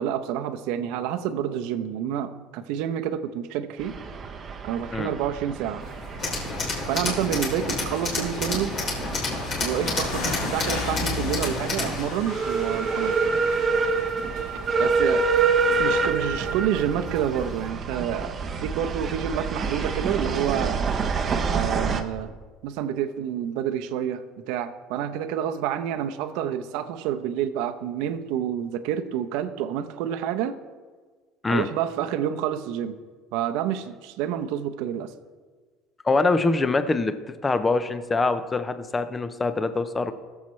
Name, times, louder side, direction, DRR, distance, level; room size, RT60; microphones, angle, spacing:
voice 1, 0.0-4.0 4.6-5.8 6.9-8.8 9.6-13.3 14.4-14.5 14.8-15.3 15.8-20.8 21.5-22.3 22.6-30.6 31.5-33.0 33.3-35.1, right 9 dB, 70° right, 10 dB, 0.7 m, -28 dB
sound 1, 3.8-22.0, right 4 dB, 25° right, 0.7 m, -27 dB
sound 2, 5.8-17.7, left 4 dB, 70° left, 2.9 m, -37 dB
Tools, 6.2-12.0, left 3 dB, 35° left, 3.1 m, -30 dB
voice 2, 36.0-37.1 37.4-40.1, left 3 dB, 15° left, 11 dB, 0.5 m, -24 dB
20.0 x 7.3 x 3.2 m, 1.4 s
cardioid pair, 160°, 0 cm